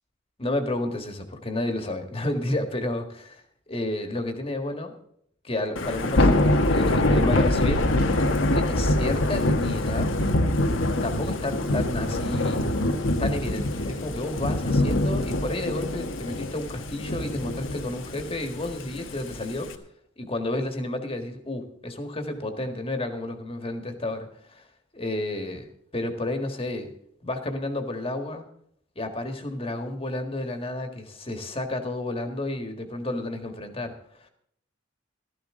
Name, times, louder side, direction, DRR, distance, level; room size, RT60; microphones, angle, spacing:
voice 1, 0.4-3.4 3.7-4.9 5.4-7.9 8.5-10.1 11.0-12.6 13.2-19.7 20.2-24.7 24.9-25.7 25.9-26.9 27.2-28.4 28.9-34.3, left 2 dB, 30° left, 6 dB, 1.7 m, -31 dB
Thunder / Rain, 5.7-19.7, left 1 dB, 75° left, 1.3 m, -24 dB
15.0 x 13.5 x 3.8 m, 0.68 s
head